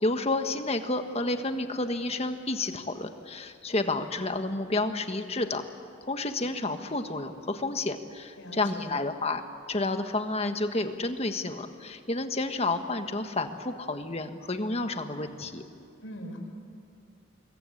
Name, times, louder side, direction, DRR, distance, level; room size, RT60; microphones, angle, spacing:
voice 1, 0.0-5.6 6.1-9.4 9.7-15.6, left 2 dB, 30° left, 7 dB, 1.4 m, -30 dB
voice 2, 8.4-8.9 16.0-16.4, equal, 80° left, 3 dB, 5.4 m, -41 dB
26.5 x 21.5 x 8.6 m, 2.6 s
head